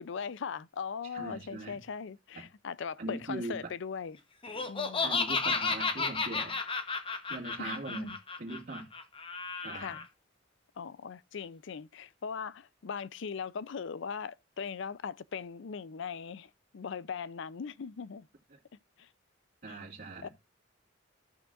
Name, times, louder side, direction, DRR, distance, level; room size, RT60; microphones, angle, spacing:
voice 1, 0.0-4.2 4.7-5.2 7.6-8.2 9.7-10.0 10.8-18.3 19.0-19.1 19.7-19.8 20.2-20.3, left 6 dB, 65° left, 0.5 m, -40 dB
voice 2, 1.1-1.8 2.4-2.5 3.0-3.6 4.4-4.7 5.0-6.5 7.3-8.1 8.4-8.9 9.6-9.9 19.6-20.3, right 2 dB, 50° right, 2.3 m, -40 dB
Laughter, 4.4-10.0, left 4 dB, 25° left, 1.0 m, -33 dB
15.0 x 6.3 x 2.5 m
head